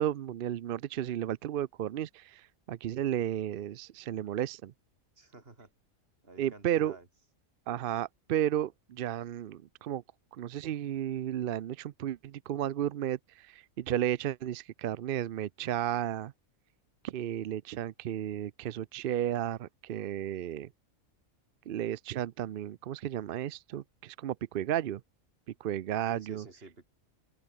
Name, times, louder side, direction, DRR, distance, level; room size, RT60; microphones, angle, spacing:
voice 1, 0.0-4.7 6.4-7.0 7.7-10.0 10.3-16.3 17.0-20.7 21.7-25.0 25.6-26.4, right 11 dB, 65° right, 0.5 m, -33 dB
voice 2, 5.2-5.7 6.2-7.1 26.1-26.9, right 3 dB, 45° right, 3.2 m, -51 dB
open air
omnidirectional pair, 1.4 m